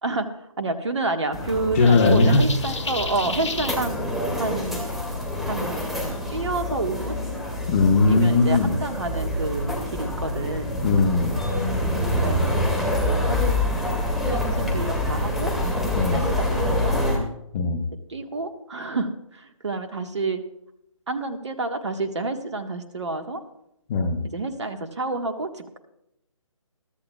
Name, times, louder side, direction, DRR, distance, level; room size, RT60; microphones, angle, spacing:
voice 1, 0.0-4.0 4.4-4.8 5.4-5.8 6.3-7.2 8.1-10.8 12.2-12.8 13.2-13.5 13.8-15.5 16.1-17.0 18.1-20.4 21.1-23.4 24.2-25.8, right 3 dB, 55° right, 6 dB, 1.6 m, -29 dB
sound 1, 1.3-17.2, left 1 dB, ahead, 2.4 m, -26 dB
voice 2, 1.7-2.4 7.7-8.7 10.8-11.4 15.9-16.2 17.5-17.8 23.9-24.2, left 3 dB, 25° left, 3 dB, 1.3 m, -19 dB
sound 2, 1.8-3.8, left 3 dB, 60° left, 1.6 m, -32 dB
22.5 x 14.0 x 2.4 m, 0.82 s
figure-of-eight pair, 145°, 17 cm